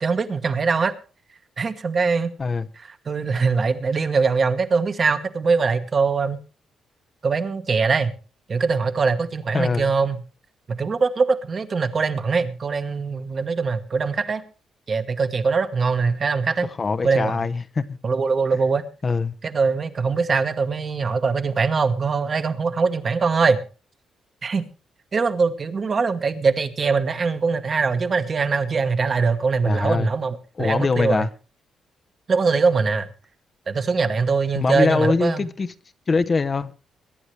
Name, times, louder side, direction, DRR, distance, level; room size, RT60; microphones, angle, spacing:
voice 1, 0.0-0.9 1.6-2.3 3.1-6.4 7.2-8.1 8.5-10.2 10.7-14.4 14.9-16.7 17.0-17.4 18.0-18.8 19.4-23.6 24.4-24.6 25.1-31.2 32.3-33.1 33.7-35.4, right 4 dB, 35° right, 1.3 m, -22 dB
voice 2, 9.5-9.9 16.8-18.0 19.0-19.3 29.6-30.1 30.6-31.3 34.5-35.7 36.1-36.7, left 4 dB, 30° left, 0.7 m, -23 dB
22.5 x 10.0 x 3.2 m
cardioid pair, 135°, 0 cm